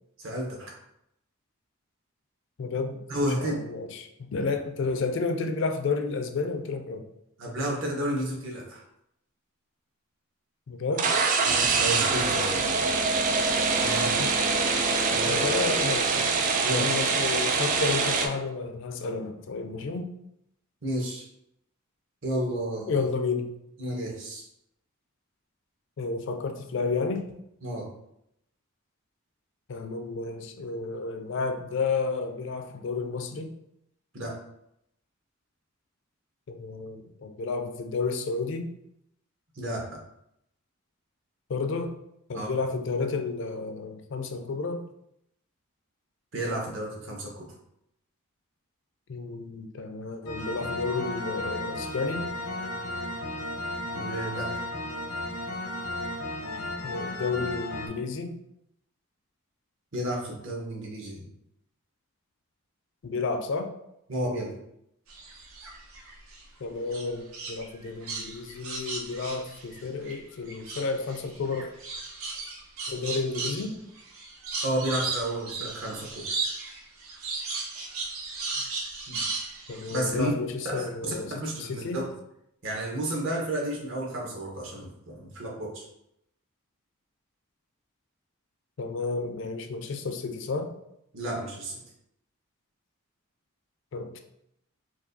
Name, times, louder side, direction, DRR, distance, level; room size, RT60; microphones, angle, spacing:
voice 1, 0.2-0.7 3.1-3.5 7.4-8.8 11.4-12.6 13.8-14.2 15.1-15.4 16.6-16.9 20.8-21.3 22.2-23.1 23.8-24.4 27.6-27.9 34.1-34.4 39.6-40.0 42.3-42.5 46.3-47.5 53.9-54.6 59.9-61.3 64.1-64.6 74.6-76.3 79.1-79.2 79.9-80.3 80.6-81.1 81.4-82.0 82.6-85.9 91.1-91.8, right 1 dB, 60° right, -2 dB, 1.0 m, -32 dB
voice 2, 2.6-7.1 10.7-11.1 11.8-12.0 12.4-12.5 13.8-14.3 15.2-16.4 16.7-20.1 22.9-23.5 26.0-27.4 29.7-33.5 36.5-38.7 41.5-41.9 42.3-44.8 49.1-52.3 56.8-58.3 63.0-63.7 66.6-71.7 72.9-73.8 79.7-82.0 88.8-90.7 93.9-94.2, left 4 dB, 60° left, 7 dB, 0.4 m, -31 dB
sound 1, 10.9-18.3, right 4 dB, 40° right, 0.3 m, -24 dB
sound 2, 50.2-57.9, left 1 dB, 85° left, 0.7 m, -34 dB
sound 3, 65.1-66.4 66.9-70.2 70.5-80.0, right 4 dB, 80° right, 0.8 m, -35 dB
4.5 x 2.3 x 2.6 m, 0.79 s
head